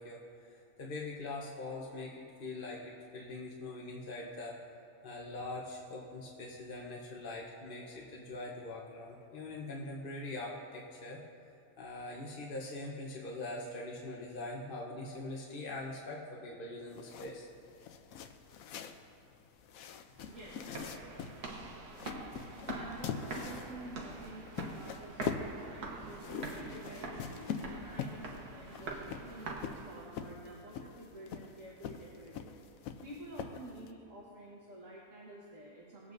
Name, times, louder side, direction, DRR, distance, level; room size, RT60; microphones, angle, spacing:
voice 1, 0.0-4.6 5.0-11.2 11.8-17.5, left 2 dB, 40° left, -3 dB, 1.0 m, -43 dB
sound 1, 16.9-33.9, left 7 dB, 70° left, 1.0 m, -44 dB
sound 2, 20.2-30.2, right 3 dB, 85° right, 1.6 m, -44 dB
voice 2, 20.3-20.7 22.1-32.5 33.0-36.1, right 1 dB, 55° right, -5 dB, 1.8 m, -50 dB
19.0 x 8.2 x 2.6 m, 2.9 s
omnidirectional pair, 1.6 m